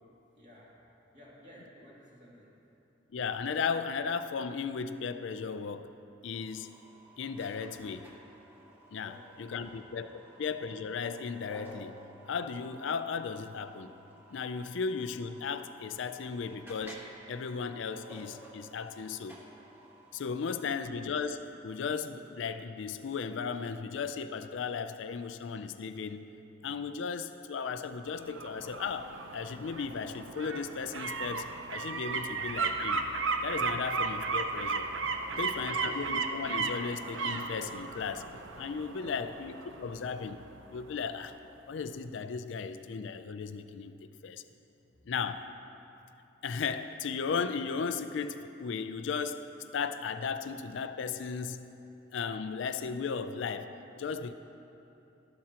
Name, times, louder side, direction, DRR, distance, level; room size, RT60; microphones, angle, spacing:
voice 1, 0.4-0.7 1.1-2.5 9.0-9.8 10.1-10.3 35.2-36.1 38.9-39.3, equal, 40° right, -6 dB, 2.5 m, -55 dB
voice 2, 3.1-5.9 6.2-6.7 7.2-8.1 8.9-11.9 12.3-13.9 14.3-19.4 20.1-26.3 26.6-33.0 33.4-34.9 35.4-38.3 38.6-40.4 40.7-41.3 41.7-43.9 44.2-44.4 45.1-45.5 46.4-51.6 52.1-54.3, left 5 dB, 70° left, 10 dB, 0.4 m, -36 dB
sound 1, 6.3-20.7, right 1 dB, 10° right, 1.2 m, -54 dB
sound 2, 28.1-40.9 41.3-41.4, right 4 dB, 75° right, 0.6 m, -35 dB
12.5 x 12.0 x 2.9 m, 2.9 s
head